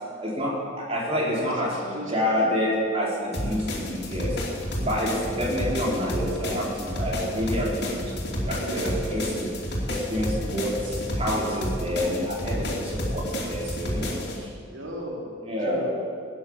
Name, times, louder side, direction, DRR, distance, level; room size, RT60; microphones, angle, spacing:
voice 1, 0.2-4.4 4.8-9.5 9.9-14.5 15.5-15.9, equal, 30° right, -4 dB, 3.4 m, -28 dB
voice 2, 1.4-2.6 4.7-5.1 8.5-8.9 12.3-12.7 14.7-15.3 15.6-15.9, right 1 dB, 75° right, -1 dB, 2.9 m, -37 dB
sound 1, 3.3-14.4, equal, 55° left, 2.9 m, -30 dB
16.5 x 9.7 x 7.2 m, 2.2 s
head